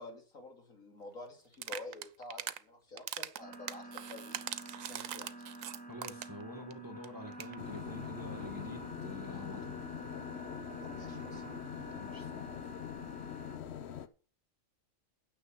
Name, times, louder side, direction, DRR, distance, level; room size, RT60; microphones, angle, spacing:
voice 1, 0.0-4.4 4.8-5.3 10.8-11.5, left 2 dB, 80° left, 2 dB, 3.2 m, -49 dB
sound 1, 1.5-2.6 3.0-6.4 6.7-6.8 7.0-7.1 7.3-7.6, right 11 dB, 80° right, 1.1 m, -41 dB
sound 2, 3.4-13.6, equal, 5° left, 1.7 m, -48 dB
voice 2, 5.9-9.8 11.9-12.5, left 1 dB, 15° right, 5 dB, 1.6 m, -47 dB
sound 3, 7.6-14.1, left 9 dB, 55° left, 1.0 m, -43 dB
9.6 x 6.9 x 7.3 m, 0.39 s
omnidirectional pair, 1.4 m